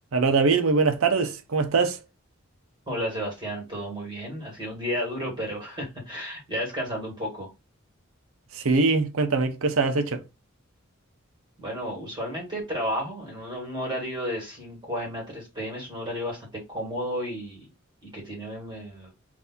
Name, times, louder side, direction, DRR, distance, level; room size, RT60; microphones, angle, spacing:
voice 1, 0.1-2.0 8.5-10.2, right 4 dB, 80° right, 0.7 m, -22 dB
voice 2, 2.9-7.5 11.6-17.7 18.0-19.1, equal, 25° right, 1.9 m, -32 dB
3.5 x 2.6 x 4.1 m
head